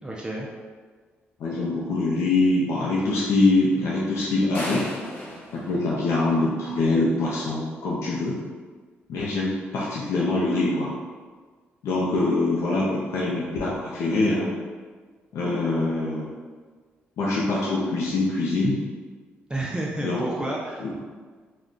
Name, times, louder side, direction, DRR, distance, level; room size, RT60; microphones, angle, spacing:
voice 1, 0.0-0.5 19.5-20.9, right 1 dB, 20° right, -3 dB, 0.4 m, -30 dB
voice 2, 1.4-4.9 5.5-8.4 9.1-10.9 11.8-14.5 15.3-16.3 17.2-18.8 20.0-20.2 20.8-20.9, left 2 dB, 75° left, -6 dB, 0.5 m, -24 dB
sound 1, 4.5-6.7, left 1 dB, 35° left, 1.2 m, -35 dB
2.3 x 2.1 x 3.7 m, 1.5 s
supercardioid pair, 60°, 5 cm